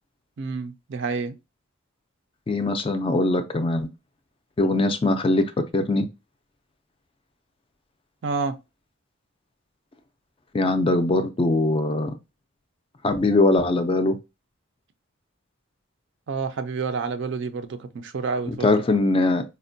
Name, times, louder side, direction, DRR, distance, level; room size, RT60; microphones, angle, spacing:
voice 1, 0.4-1.3 8.2-8.6 16.3-18.7, right 4 dB, 55° right, 0.4 m, -29 dB
voice 2, 2.5-3.9 4.6-5.4 5.7-6.1 10.5-12.2 13.0-14.2 18.5-19.4, left 2 dB, 25° left, 0.3 m, -21 dB
4.3 x 2.1 x 2.6 m
head